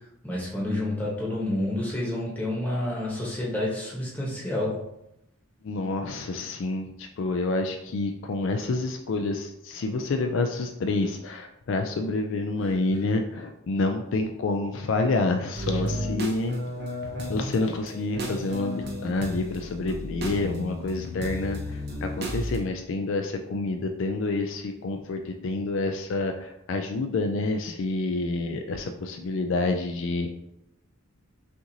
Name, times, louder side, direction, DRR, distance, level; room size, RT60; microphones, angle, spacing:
voice 1, 0.2-4.8, left 1 dB, 5° left, -5 dB, 1.0 m, -29 dB
voice 2, 5.6-16.6 17.3-30.3, left 3 dB, 60° left, 5 dB, 0.3 m, -28 dB
sound 1, 15.5-22.6, equal, 50° right, 0.7 m, -33 dB
5.7 x 2.6 x 2.7 m, 0.82 s
head